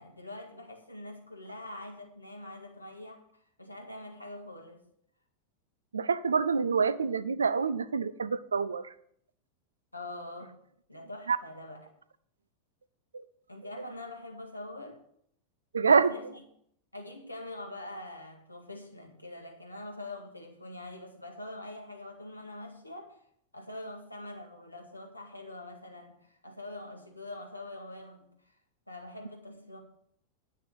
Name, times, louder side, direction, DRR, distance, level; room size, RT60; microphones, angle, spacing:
voice 1, 0.0-4.8 9.9-10.6 10.9-11.9 13.5-15.0 15.9-16.3 16.9-23.2 23.5-28.5 28.9-29.8, left 1 dB, 85° left, 2.0 m, -44 dB
voice 2, 5.9-8.9 11.3-11.4 13.1-13.2 15.7-16.1, right 5 dB, 75° right, 0.6 m, -26 dB
10.0 x 6.5 x 7.8 m
figure-of-eight pair, 90°, 0 cm